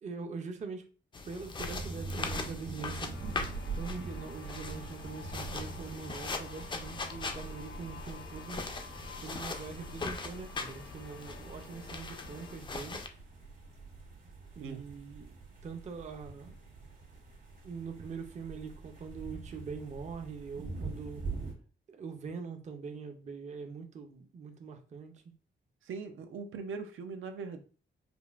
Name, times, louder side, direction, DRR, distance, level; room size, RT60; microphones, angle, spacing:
voice 1, 0.0-0.8 1.2-3.5 3.8-8.7 9.2-13.0 14.6-15.4 15.6-16.6 17.6-21.2 21.9-25.3, right 5 dB, 35° right, 0.5 m, -43 dB
sound 1, 1.1-13.1, left 4 dB, 25° left, 0.3 m, -41 dB
sound 2, 1.6-21.5, right 3 dB, 60° right, 1.5 m, -44 dB
sound 3, 3.1-12.6, left 5 dB, 80° left, 0.8 m, -52 dB
voice 2, 14.6-14.9 25.8-27.6, right 5 dB, 85° right, 0.5 m, -41 dB
5.1 x 2.4 x 2.3 m
wide cardioid pair, 175°, 20 cm